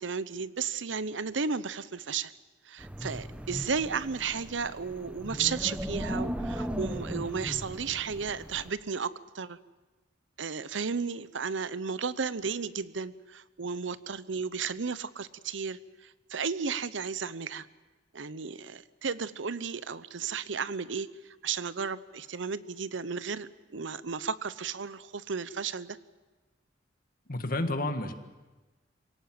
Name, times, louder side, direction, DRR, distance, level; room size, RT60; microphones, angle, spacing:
voice 1, 0.0-2.3 2.7-9.6 10.4-17.7 18.1-26.0, right 5 dB, 85° right, 16 dB, 0.8 m, -34 dB
Wind, 2.8-8.7, equal, 5° right, 0.9 m, -37 dB
voice 2, 27.3-28.1, left 2 dB, 50° left, 8 dB, 1.7 m, -30 dB
26.5 x 17.5 x 7.6 m, 1.2 s
head